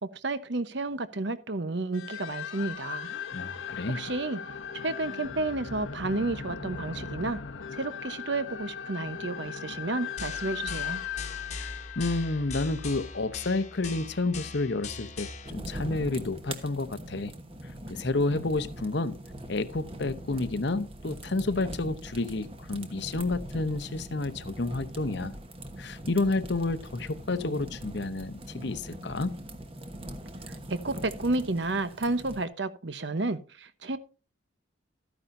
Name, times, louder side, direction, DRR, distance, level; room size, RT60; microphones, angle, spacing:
voice 1, 0.0-3.1 3.9-4.4 4.8-7.4 7.7-11.0 30.7-34.0, right 2 dB, 60° right, 0.9 m, -31 dB
sound 1, 1.9-13.2, left 7 dB, 80° left, 1.1 m, -38 dB
voice 2, 3.3-4.0 11.5-17.3 17.9-19.2 19.5-25.4 25.8-29.3, left 2 dB, 55° left, 0.8 m, -30 dB
sound 2, 10.2-15.5, left 4 dB, 35° left, 1.3 m, -40 dB
sound 3, 15.4-32.4, right 1 dB, 30° right, 1.2 m, -42 dB
13.5 x 9.7 x 2.6 m
head